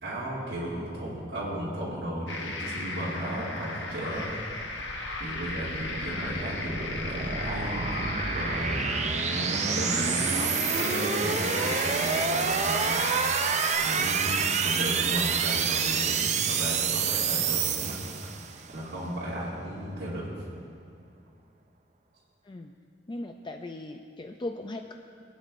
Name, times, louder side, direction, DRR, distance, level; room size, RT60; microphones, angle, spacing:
voice 1, 0.0-4.3 5.2-8.8 9.3-13.1 13.8-18.0 18.7-20.4, equal, 65° right, -12 dB, 2.5 m, -34 dB
sound 1, 2.3-13.7, left 2 dB, 85° left, 1.3 m, -35 dB
sound 2, 4.2-18.7, right 6 dB, 40° right, 0.5 m, -28 dB
voice 2, 23.1-24.9, left 2 dB, 25° left, 5 dB, 0.4 m, -38 dB
23.5 x 9.2 x 2.6 m, 2.4 s
head